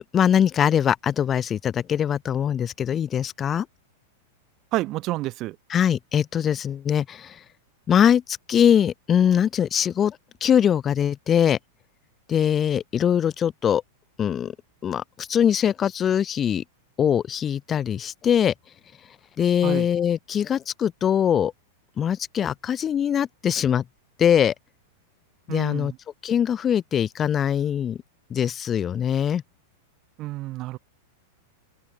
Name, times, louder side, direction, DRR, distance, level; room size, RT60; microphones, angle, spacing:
voice 1, 0.0-3.7 5.7-7.4 7.9-11.6 12.3-13.8 14.2-14.5 14.8-16.6 17.0-18.5 19.4-21.5 22.0-23.8 24.2-24.5 25.5-25.9 26.2-28.0 28.3-29.4, left 9 dB, 25° left, 0.7 m, -22 dB
voice 2, 4.7-5.6 19.6-19.9 25.5-26.0 30.2-30.8, right 18 dB, 40° right, 0.9 m, -29 dB
open air
figure-of-eight pair, 95°, 0 cm